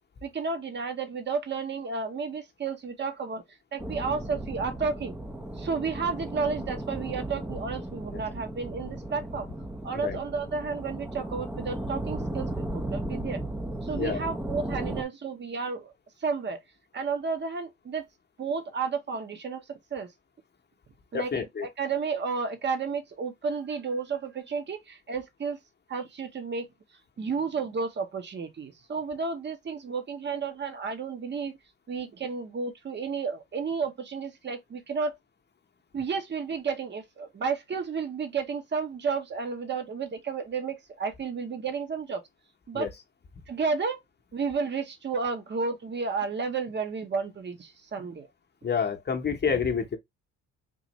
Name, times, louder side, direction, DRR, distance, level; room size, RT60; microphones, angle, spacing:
voice 1, 0.2-3.4 3.7-5.1 5.6-9.5 9.8-13.4 13.8-15.9 16.2-16.6 16.9-18.0 18.4-19.6 19.9-20.1 21.1-21.4 21.8-25.6 25.9-26.7 27.2-31.6 31.9-35.2 35.9-42.2 42.7-42.9 43.5-44.0 44.3-48.3, right 5 dB, 35° right, 0.9 m, -32 dB
sound 1, 3.8-15.0, right 1 dB, 5° right, 0.5 m, -35 dB
voice 2, 21.1-21.7 42.7-42.9 48.6-50.0, left 6 dB, 35° left, 0.8 m, -28 dB
3.7 x 2.5 x 3.0 m
cardioid pair, 90°, 30 cm